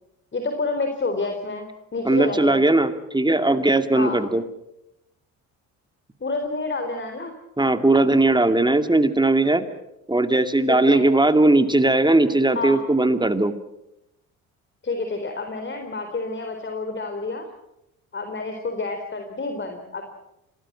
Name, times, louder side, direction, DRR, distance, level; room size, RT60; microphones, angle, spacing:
voice 1, 0.3-2.6 3.9-4.2 6.2-7.3 10.6-11.1 12.5-12.8 14.8-17.5 18.1-20.1, left 3 dB, 30° left, 5 dB, 4.2 m, -29 dB
voice 2, 2.0-4.4 7.6-9.6 10.1-13.5, right 2 dB, 10° right, 9 dB, 2.4 m, -18 dB
26.5 x 19.0 x 7.6 m, 0.86 s
supercardioid pair, 65°, 39 cm